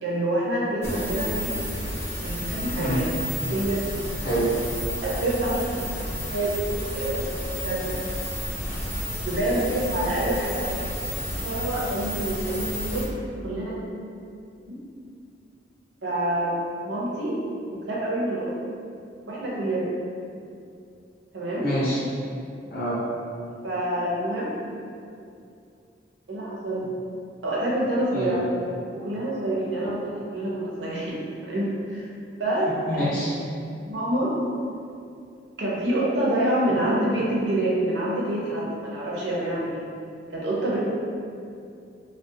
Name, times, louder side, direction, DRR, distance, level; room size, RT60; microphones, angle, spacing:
voice 1, 0.0-1.6 2.2-3.1 3.5-3.8 5.0-5.9 6.3-7.2 7.6-7.9 9.3-10.8 11.4-13.1 13.4-13.7 14.7-14.8 16.0-17.3 17.9-18.5 19.3-19.9 21.3-21.7 23.6-24.5 26.3-26.9 27.4-30.0 30.3-32.1 32.4-32.7 33.0-33.1 33.8-34.3 35.6-39.8 40.3-40.8, right 1 dB, 80° right, -6 dB, 0.6 m, -27 dB
sound 1, 0.8-13.0, equal, 15° left, 0.4 m, -31 dB
voice 2, 21.6-22.0 22.7-23.0 28.1-28.4 32.9-33.3, equal, 55° left, -8 dB, 0.7 m, -26 dB
2.3 x 2.2 x 2.6 m, 2.5 s
head